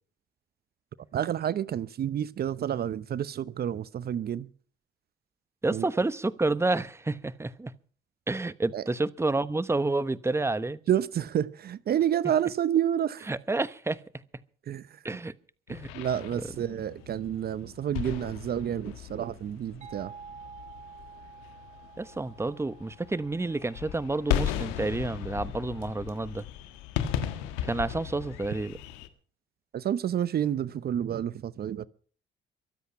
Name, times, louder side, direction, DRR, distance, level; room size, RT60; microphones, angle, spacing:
voice 1, 1.1-4.5 5.7-5.8 8.7-8.8 10.9-13.3 14.7-15.0 15.9-20.1 29.7-31.9, right 10 dB, 55° right, 0.8 m, -29 dB
voice 2, 5.6-7.7 8.3-10.8 13.3-14.0 15.0-15.3 15.7-15.9 22.0-26.5 27.6-28.8, right 2 dB, 15° right, 1.0 m, -29 dB
sound 1, 15.7-29.1, left 11 dB, 90° left, 1.6 m, -36 dB
sound 2, 19.8-25.3, right 6 dB, 35° right, 2.5 m, -50 dB
23.5 x 8.2 x 5.9 m
supercardioid pair, 65°, 19 cm